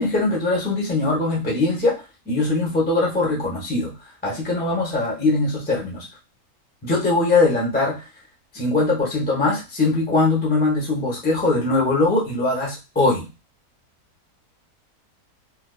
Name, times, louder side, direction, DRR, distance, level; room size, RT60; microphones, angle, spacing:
voice 1, 0.0-3.9 4.2-6.1 6.8-8.1 8.5-13.3, left 2 dB, 10° left, -4 dB, 0.4 m, -21 dB
2.5 x 2.3 x 2.3 m, 0.27 s
omnidirectional pair, 1.7 m